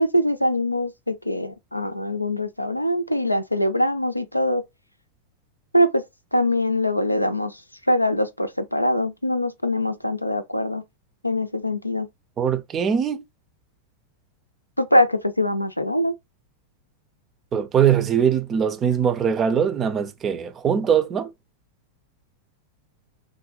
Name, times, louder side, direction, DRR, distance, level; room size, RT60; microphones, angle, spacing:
voice 1, 0.0-4.6 5.7-6.0 6.3-7.6 7.9-10.8 11.2-12.1 14.8-16.1, left 1 dB, 85° left, 0.5 m, -23 dB
voice 2, 12.4-13.2 17.5-21.3, right 8 dB, 25° right, 0.5 m, -21 dB
3.7 x 2.1 x 3.2 m
figure-of-eight pair, 90°, 0 cm